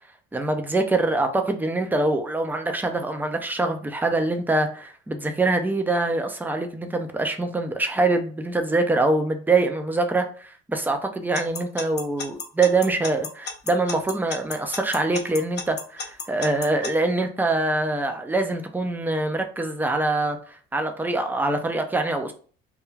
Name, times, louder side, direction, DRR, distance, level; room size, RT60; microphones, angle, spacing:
voice 1, 0.3-22.3, right 2 dB, 5° right, 6 dB, 0.5 m, -24 dB
Alarm / Clock, 11.3-16.9, left 5 dB, 35° left, 0.6 m, -32 dB
2.4 x 2.3 x 3.1 m, 0.41 s
hypercardioid pair, 60°, 30 cm